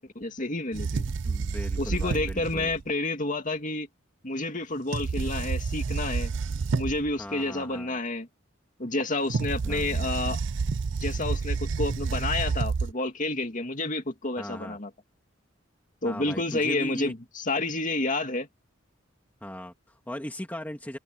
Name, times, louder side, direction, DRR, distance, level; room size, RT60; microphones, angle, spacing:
voice 1, 0.2-1.0 1.8-3.9 4.2-6.3 6.8-8.3 8.8-10.4 11.0-14.9 16.0-18.5, left 2 dB, 40° left, 2.3 m, -30 dB
sound 1, 0.7-2.8 4.9-7.1 9.3-12.9, right 4 dB, 60° right, 0.5 m, -29 dB
voice 2, 1.2-2.7 7.2-8.0 9.6-10.1 14.4-14.8 16.0-17.1 19.4-21.0, equal, 10° left, 2.2 m, -38 dB
open air
head